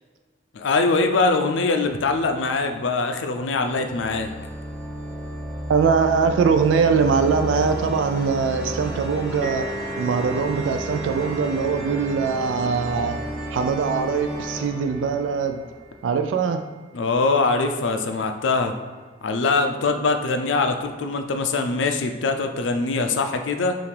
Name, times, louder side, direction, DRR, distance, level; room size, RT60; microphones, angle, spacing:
voice 1, 0.5-4.3 16.9-18.7 19.2-23.8, left 3 dB, 80° left, 6 dB, 0.4 m, -22 dB
sound 1, 1.8-3.0 3.6-16.2, right 1 dB, 5° right, 0.9 m, -33 dB
voice 2, 5.7-9.7 10.0-13.2 13.5-15.6 16.0-16.6, right 5 dB, 85° right, 7 dB, 0.3 m, -22 dB
sound 2, 9.4-16.9, equal, 45° right, 0.9 m, -38 dB
5.7 x 2.5 x 3.3 m, 1.5 s
head